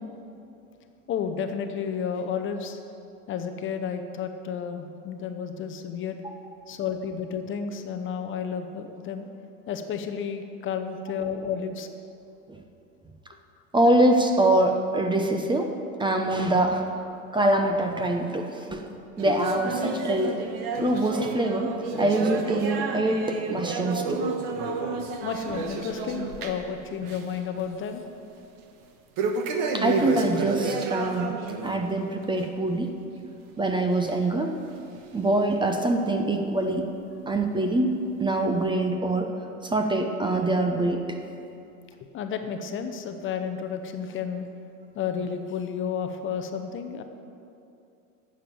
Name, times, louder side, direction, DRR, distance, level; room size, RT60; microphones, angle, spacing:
voice 1, 1.1-2.8 3.3-6.2 6.7-9.3 9.7-11.9 25.2-28.0 37.0-37.3 42.1-44.5 44.9-47.0, left 7 dB, 25° left, 7 dB, 0.8 m, -32 dB
voice 2, 13.7-15.7 16.0-16.8 17.3-18.8 19.2-20.4 20.8-24.3 29.7-31.3 31.6-33.0 33.6-34.5 35.1-36.9 37.3-39.3 39.6-41.2, right 1 dB, 10° right, 4 dB, 0.7 m, -24 dB
sound 1, 19.2-26.7 27.0-27.4 27.7-27.8 29.2-31.8 32.2-32.4 33.1-33.2 34.1-34.2 35.0-35.1, right 4 dB, 45° right, 1.4 m, -30 dB
11.0 x 7.4 x 7.7 m, 2.7 s
hypercardioid pair, 115°, 45 cm